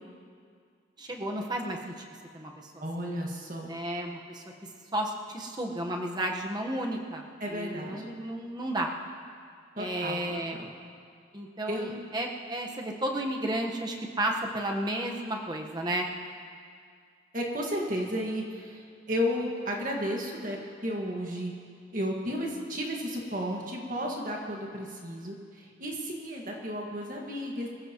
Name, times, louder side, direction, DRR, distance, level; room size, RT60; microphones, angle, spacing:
voice 1, 1.0-2.1 2.3-2.7 3.7-4.4 4.9-7.2 7.5-8.9 9.8-10.6 11.3-16.1, right 1 dB, 20° right, 1 dB, 1.2 m, -32 dB
voice 2, 2.8-3.7 7.4-8.0 9.8-10.7 11.7-11.9 17.3-21.5 21.9-27.7, equal, 45° right, -1 dB, 1.7 m, -33 dB
23.0 x 15.0 x 3.0 m, 2.2 s
head